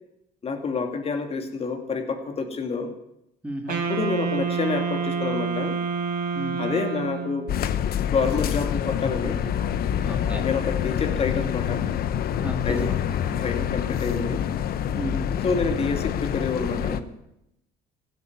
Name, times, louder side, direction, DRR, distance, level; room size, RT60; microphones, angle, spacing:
voice 1, 0.4-2.9 3.7-5.8 6.6-7.5 8.1-9.4 10.3-11.9 12.6-12.9 13.4-14.4 15.4-17.0, left 4 dB, 35° left, 5 dB, 2.6 m, -28 dB
voice 2, 3.4-3.8 6.3-6.7 10.0-10.4 12.4-13.4 15.0-15.4, right 1 dB, 5° right, 3 dB, 1.8 m, -34 dB
Wind instrument woodwind instrument, 3.7-7.5, right 6 dB, 60° right, 3.8 m, -28 dB
sound 1, 7.5-17.0, left 9 dB, 65° left, 1.0 m, -26 dB
16.0 x 8.3 x 9.7 m, 0.82 s
cardioid pair, 110°, 17 cm